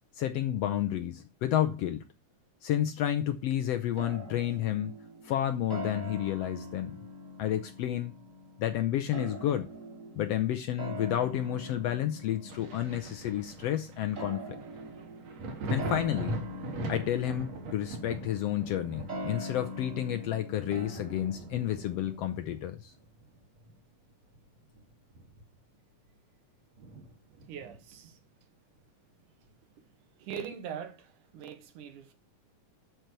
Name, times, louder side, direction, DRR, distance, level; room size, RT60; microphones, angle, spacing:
voice 1, 0.1-2.0 2.6-5.0 5.2-6.9 7.4-8.1 8.6-9.7 10.2-14.6 15.7-16.4 16.9-22.9, left 11 dB, 75° left, 1.5 m, -31 dB
sound 1, 4.0-22.4, equal, 30° right, 2.0 m, -43 dB
Thunder, 12.5-23.8 24.2-25.8 26.1-26.2 26.8-28.1 29.5-29.6, right 1 dB, 60° right, 2.9 m, -41 dB
voice 2, 27.5-28.2 29.4-29.5 30.1-32.1, right 8 dB, 85° right, 2.8 m, -42 dB
12.0 x 4.7 x 6.6 m
omnidirectional pair, 3.5 m